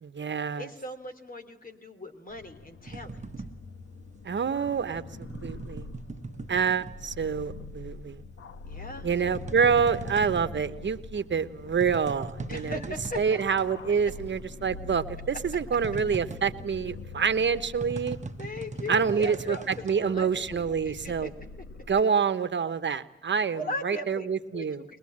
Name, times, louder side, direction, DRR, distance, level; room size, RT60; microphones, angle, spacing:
voice 1, 0.0-0.7 4.2-5.0 5.4-5.9 6.5-8.2 9.0-12.8 13.2-18.2 18.9-21.3 21.9-24.8, right 6 dB, 60° right, 11 dB, 1.1 m, -27 dB
voice 2, 0.6-3.2 8.6-9.1 12.5-13.4 18.4-21.3 23.5-24.3 24.5-24.8, left 1 dB, 45° left, 6 dB, 3.2 m, -38 dB
sound 1, 2.3-22.0, left 4 dB, 85° left, 1.3 m, -44 dB
sound 2, 2.9-7.6 7.9-13.8 14.1-14.2 14.4-20.9, right 3 dB, 35° right, 1.0 m, -40 dB
23.0 x 21.0 x 8.7 m, 0.92 s
wide cardioid pair, 110°, 21 cm